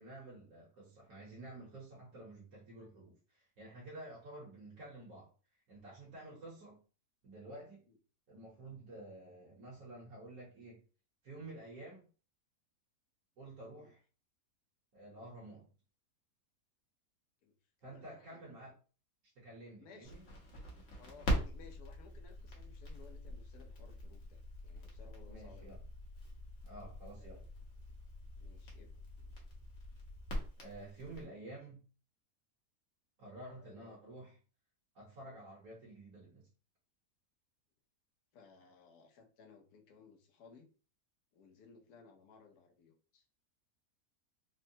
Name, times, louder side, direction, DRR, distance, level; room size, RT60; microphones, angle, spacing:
voice 1, 0.0-5.3 5.7-6.8 7.2-7.8 8.3-10.8 11.2-12.1 13.4-14.0 14.9-15.7 17.8-18.7 19.3-20.2 25.3-25.8 26.6-27.4 30.6-31.8 33.2-34.4 34.9-36.5, right 2 dB, 65° right, -6 dB, 1.4 m, -51 dB
voice 2, 17.8-18.5 19.8-20.1 21.0-25.7 27.2-27.4 28.4-29.0 33.6-34.0 38.3-40.7 41.3-43.2, left 5 dB, 75° left, 4 dB, 1.1 m, -60 dB
Crackle, 20.0-31.2, equal, 55° left, 1.1 m, -43 dB
3.6 x 2.1 x 2.6 m, 0.37 s
omnidirectional pair, 1.7 m